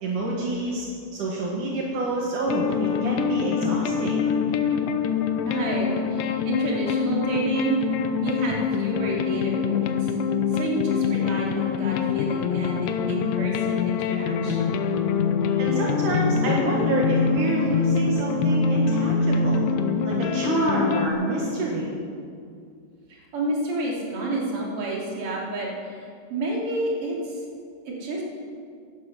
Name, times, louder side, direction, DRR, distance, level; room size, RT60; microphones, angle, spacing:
voice 1, 0.0-4.3 15.6-19.6 20.0-21.9, right 2 dB, 70° right, -2 dB, 3.1 m, -27 dB
sound 1, 2.5-21.1, left 6 dB, 90° left, 2.5 m, -24 dB
voice 2, 5.4-7.8 8.2-10.1 10.5-14.8 23.1-27.4 27.9-28.2, right 2 dB, 45° right, -3 dB, 3.7 m, -30 dB
16.5 x 11.5 x 6.7 m, 2.3 s
omnidirectional pair, 3.8 m